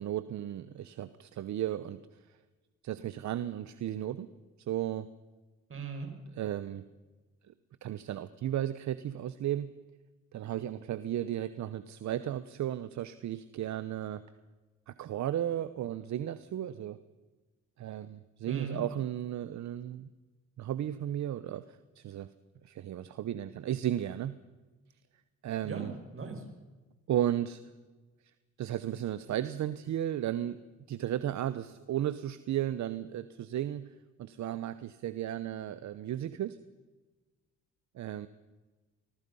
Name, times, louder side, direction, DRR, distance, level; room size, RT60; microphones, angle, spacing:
voice 1, 0.0-2.2 2.8-4.3 4.6-5.1 6.4-6.8 7.5-7.6 7.8-9.7 10.3-14.2 14.9-17.0 17.8-20.1 20.6-22.3 22.6-24.4 25.4-25.9 27.1-27.6 28.6-30.6 30.9-33.9 34.2-36.6 37.9-38.3, right 11 dB, 65° right, 14 dB, 1.0 m, -34 dB
voice 2, 5.7-6.1 18.5-18.8 25.6-26.4, right 5 dB, 45° right, 5 dB, 6.0 m, -38 dB
25.5 x 20.0 x 5.6 m, 1.2 s
cardioid pair, 90°, 30 cm